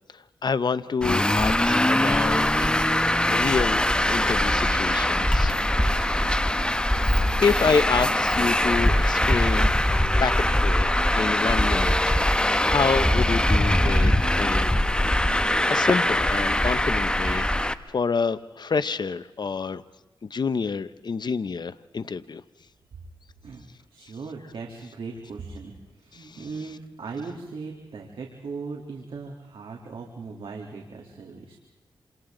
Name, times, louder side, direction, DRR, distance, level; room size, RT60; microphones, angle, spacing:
voice 1, 0.1-2.7 3.3-3.8 4.1-5.5 7.4-9.7 10.2-14.1 14.4-14.7 15.7-19.8 20.2-22.4 24.0-24.1 26.1-26.5, left 5 dB, 55° left, 14 dB, 0.8 m, -28 dB
Traffic noise roadway noise, 1.0-17.7, left 1 dB, 10° left, 1.2 m, -22 dB
voice 2, 23.9-31.6, right 4 dB, 75° right, 0 dB, 3.3 m, -38 dB
29.0 x 27.5 x 3.9 m, 1.1 s
cardioid pair, 65°, 9 cm